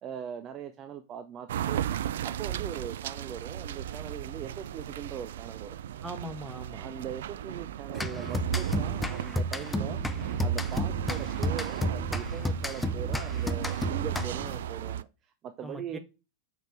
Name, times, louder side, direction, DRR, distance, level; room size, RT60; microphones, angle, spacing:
voice 1, 0.0-2.0 2.2-5.8 6.8-16.0, right 8 dB, 30° right, 10 dB, 0.7 m, -41 dB
sound 1, 1.5-15.0, right 10 dB, 60° right, 0.4 m, -34 dB
voice 2, 6.0-6.9 15.6-16.0, right 2 dB, 10° right, 7 dB, 1.5 m, -41 dB
sound 2, 8.0-14.6, left 1 dB, 5° left, 0.6 m, -33 dB
6.5 x 5.1 x 6.1 m, 0.29 s
figure-of-eight pair, 90°, 0 cm